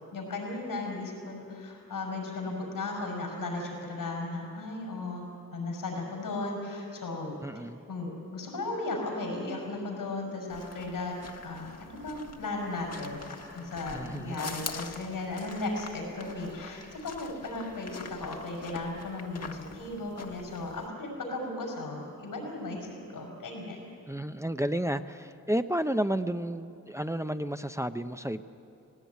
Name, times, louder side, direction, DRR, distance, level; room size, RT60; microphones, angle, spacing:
voice 1, 0.1-11.2 11.4-13.3 13.5-23.8, left 2 dB, 85° left, 0 dB, 6.1 m, -36 dB
voice 2, 7.4-7.8 13.9-14.4 24.1-28.4, right 1 dB, 10° right, 9 dB, 0.7 m, -31 dB
sound 1, 10.5-20.9, left 4 dB, 50° left, 1.6 m, -45 dB
17.5 x 17.5 x 9.5 m, 2.6 s
cardioid pair, 50°, 33 cm